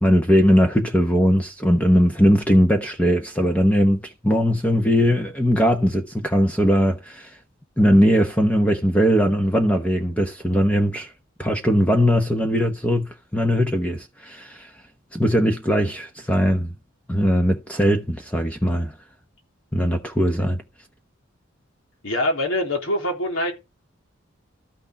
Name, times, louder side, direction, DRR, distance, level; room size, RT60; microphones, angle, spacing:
voice 1, 0.0-7.4 7.8-11.1 11.4-14.7 15.1-16.7 17.1-18.9 19.7-20.6, equal, 5° left, 1.0 m, -20 dB
voice 2, 22.0-23.5, left 1 dB, 75° left, 3.4 m, -24 dB
13.0 x 6.5 x 4.7 m
head